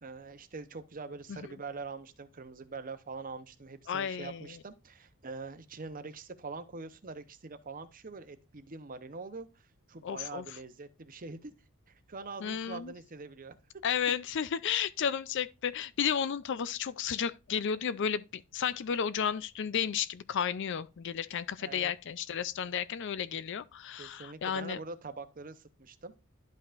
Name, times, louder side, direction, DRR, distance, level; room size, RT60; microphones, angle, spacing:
voice 1, 0.0-11.5 11.9-13.6 21.6-21.9 24.0-26.1, right 4 dB, 40° right, 0.8 m, -44 dB
voice 2, 3.9-4.6 10.0-10.4 12.4-12.9 13.8-24.8, left 8 dB, 55° left, 0.4 m, -33 dB
11.5 x 5.5 x 2.5 m
head